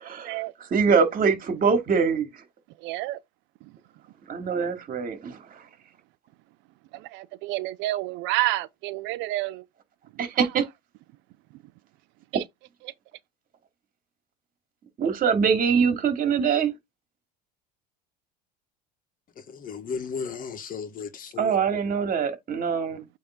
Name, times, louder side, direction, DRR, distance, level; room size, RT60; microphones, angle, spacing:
voice 1, 0.0-0.4 0.7-2.3 4.3-5.6 10.2-10.6 15.0-16.7 21.4-23.1, right 6 dB, 45° right, 2.6 m, -23 dB
voice 2, 2.8-3.2 6.9-9.6 10.3-10.5 12.3-12.4, right 17 dB, 65° right, 0.5 m, -29 dB
voice 3, 19.5-21.6, left 6 dB, 40° left, 1.8 m, -35 dB
8.5 x 3.5 x 3.9 m
supercardioid pair, 90°, 21 cm